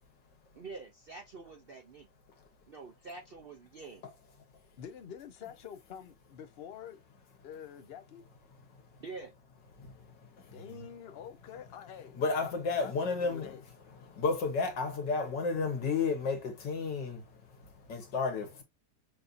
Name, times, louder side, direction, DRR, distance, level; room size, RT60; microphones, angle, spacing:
voice 1, 0.5-2.1 2.7-4.0 9.0-9.3, right 4 dB, 70° right, 0.5 m, -46 dB
voice 2, 4.8-7.0 7.4-8.2 10.5-12.5 12.8-12.9 13.2-13.6, left 8 dB, 50° left, 0.7 m, -47 dB
voice 3, 12.2-13.5 14.2-17.2 17.9-18.6, left 4 dB, 90° left, 2.0 m, -31 dB
6.4 x 2.7 x 2.5 m
omnidirectional pair, 1.8 m